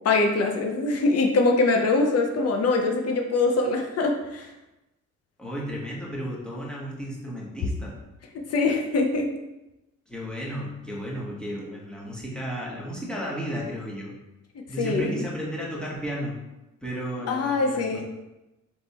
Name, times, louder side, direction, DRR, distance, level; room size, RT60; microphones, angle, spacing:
voice 1, 0.0-4.5 8.5-9.3 14.8-15.2 17.3-18.0, left 3 dB, 55° left, 3 dB, 0.7 m, -23 dB
voice 2, 5.4-8.0 10.1-14.1 14.7-16.4 16.8-18.0, equal, 5° left, -5 dB, 1.3 m, -33 dB
3.5 x 3.2 x 4.2 m, 0.97 s
cardioid pair, 90°, 30 cm